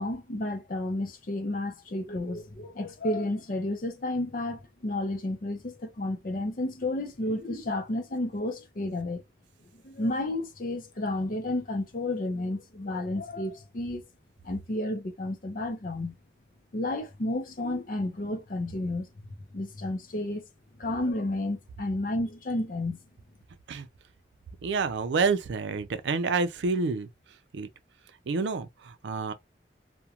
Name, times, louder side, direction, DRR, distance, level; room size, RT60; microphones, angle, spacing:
voice 1, 0.0-9.2 9.8-14.0 14.4-16.2 16.7-19.1 19.5-20.4 20.8-23.0, left 1 dB, 50° left, 0.5 m, -31 dB
voice 2, 24.6-27.1 27.5-27.7 28.3-29.3, right 4 dB, 80° right, 0.4 m, -28 dB
2.4 x 2.2 x 2.7 m
head